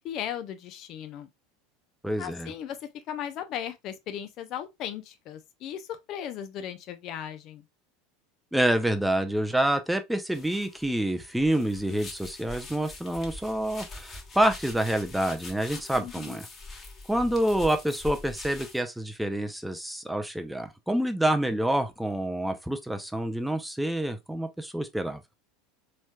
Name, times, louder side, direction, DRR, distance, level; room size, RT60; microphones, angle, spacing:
voice 1, 0.0-1.3 2.2-7.6 15.9-16.4, left 9 dB, 45° left, 0.6 m, -37 dB
voice 2, 2.0-2.5 8.5-16.5 17.1-25.2, right 1 dB, 5° right, 0.6 m, -27 dB
sound 1, 10.3-18.8, left 3 dB, 25° left, 1.2 m, -43 dB
4.2 x 3.2 x 2.3 m
figure-of-eight pair, 75°, 0 cm